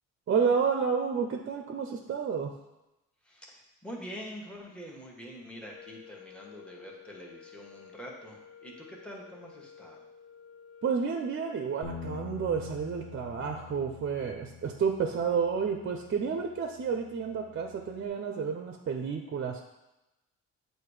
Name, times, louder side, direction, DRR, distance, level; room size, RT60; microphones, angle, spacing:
voice 1, 0.3-2.5 10.8-19.6, right 6 dB, 40° right, 4 dB, 0.6 m, -30 dB
voice 2, 3.2-10.0, equal, 5° left, -2 dB, 1.2 m, -45 dB
sound 1, 5.6-13.8, left 8 dB, 50° left, 0.7 m, -53 dB
Bass guitar, 11.8-18.1, left 7 dB, 25° left, 1.0 m, -46 dB
7.6 x 2.7 x 4.8 m, 0.96 s
cardioid pair, 90°, 30 cm